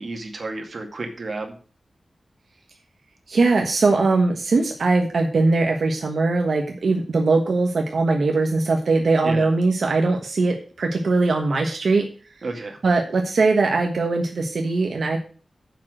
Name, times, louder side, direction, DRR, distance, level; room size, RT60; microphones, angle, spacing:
voice 1, 0.0-1.5 9.2-9.5 12.4-12.8, right 3 dB, 55° right, 3 dB, 2.3 m, -31 dB
voice 2, 3.3-12.1 12.8-15.2, right 3 dB, 75° right, 2 dB, 1.3 m, -20 dB
7.4 x 6.1 x 7.6 m, 0.38 s
wide cardioid pair, 120°, 0 cm